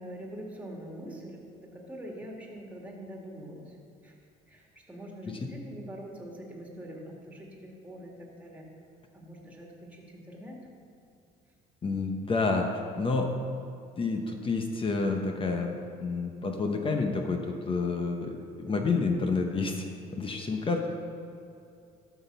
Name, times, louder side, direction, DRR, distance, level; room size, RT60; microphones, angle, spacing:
voice 1, 0.0-3.8 4.0-4.2 4.5-8.6 9.1-10.6 18.6-18.7, equal, 10° right, -1 dB, 2.2 m, -44 dB
voice 2, 11.8-12.7 13.0-13.3 14.0-19.8 20.1-20.9, left 4 dB, 30° left, 3 dB, 1.0 m, -29 dB
12.5 x 6.2 x 5.5 m, 2.5 s
cardioid pair, 110°, 17 cm